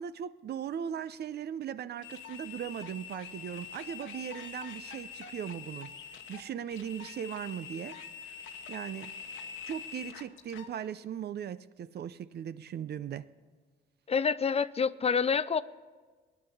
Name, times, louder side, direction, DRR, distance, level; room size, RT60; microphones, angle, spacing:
voice 1, 0.0-6.0 6.3-8.0 8.7-9.2 9.6-13.3, right 9 dB, 55° right, 0.6 m, -38 dB
sound 1, 2.0-10.7, left 7 dB, 85° left, 1.1 m, -45 dB
voice 2, 14.1-15.6, left 6 dB, 30° left, 0.4 m, -27 dB
18.5 x 10.0 x 7.0 m
cardioid pair, 90°, 20 cm